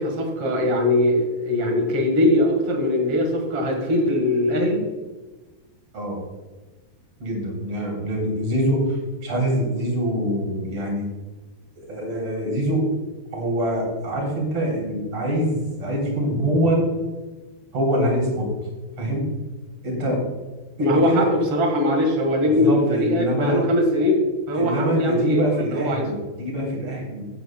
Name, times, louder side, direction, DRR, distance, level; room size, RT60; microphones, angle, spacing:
voice 1, 0.0-4.8 20.8-24.2 24.5-25.4 25.7-26.2, left 1 dB, 55° right, 2 dB, 1.6 m, -21 dB
voice 2, 7.2-11.1 11.8-12.9 13.3-16.9 17.7-18.5 19.0-19.3 19.8-20.2 20.8-21.3 22.5-23.6 24.6-27.3, right 1 dB, 35° right, -2 dB, 4.1 m, -24 dB
16.0 x 9.2 x 2.3 m, 1.2 s
omnidirectional pair, 5.2 m